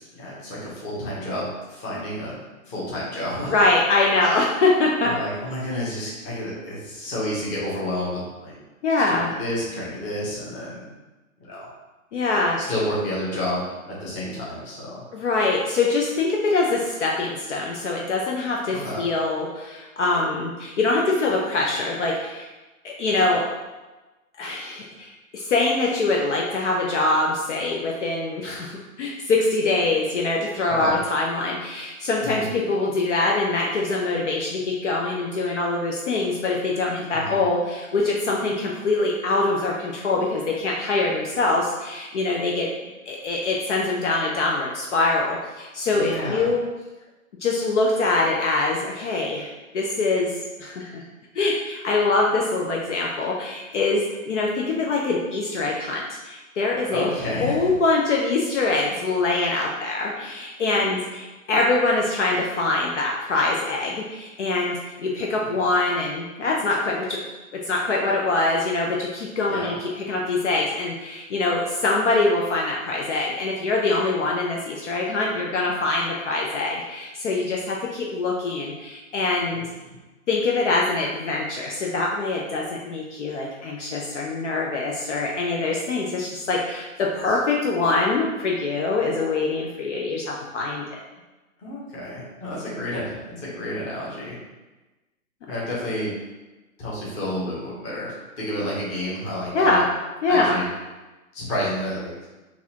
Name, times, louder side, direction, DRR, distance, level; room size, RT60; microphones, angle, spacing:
voice 1, 0.0-2.4 2.7-3.6 5.0-8.6 9.0-10.9 11.5-11.7 12.7-15.0 18.8-19.1 30.8-30.9 32.2-32.5 37.1-37.4 45.9-46.5 56.9-57.7 69.5-69.8 79.5-79.6 87.3-87.4 91.6-94.4 95.5-96.1 96.8-99.8 100.3-100.6 101.3-102.3, left 1 dB, 15° left, -7 dB, 0.9 m, -30 dB
voice 2, 3.5-5.1 8.8-9.3 12.1-12.6 15.1-22.5 22.8-23.4 24.4-42.7 43.1-46.7 47.4-50.3 50.6-51.0 51.3-57.1 57.4-67.2 67.7-79.6 80.3-90.8 99.5-99.9 100.2-100.6, left 3 dB, 55° left, -1 dB, 0.6 m, -24 dB
3.9 x 2.5 x 2.8 m, 1.1 s
hypercardioid pair, 135°, 43 cm